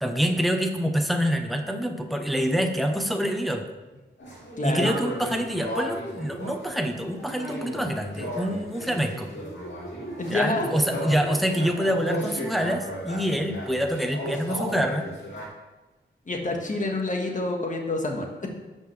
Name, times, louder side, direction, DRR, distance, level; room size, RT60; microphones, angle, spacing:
voice 1, 0.0-3.6 4.6-9.3 10.3-15.1, equal, ahead, 4 dB, 0.9 m, -26 dB
sound 1, 4.2-15.5, equal, 85° left, 2.7 m, -35 dB
voice 2, 4.6-5.0 10.2-10.7 16.3-18.5, left 2 dB, 40° left, 1 dB, 1.6 m, -28 dB
14.0 x 5.4 x 3.3 m, 1.1 s
wide cardioid pair, 90°, 19 cm